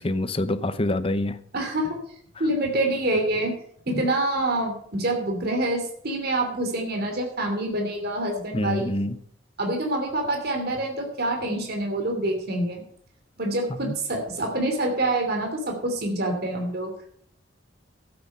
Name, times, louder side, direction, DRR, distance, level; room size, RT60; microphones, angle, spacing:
voice 1, 0.0-1.4 3.9-4.0 8.5-9.2 13.7-13.9, left 1 dB, 30° left, 12 dB, 0.8 m, -26 dB
voice 2, 1.5-2.0 2.4-3.5 3.9-8.9 9.6-12.8 13.4-16.9, right 1 dB, 55° right, 3 dB, 2.9 m, -26 dB
12.5 x 8.8 x 5.6 m, 0.64 s
head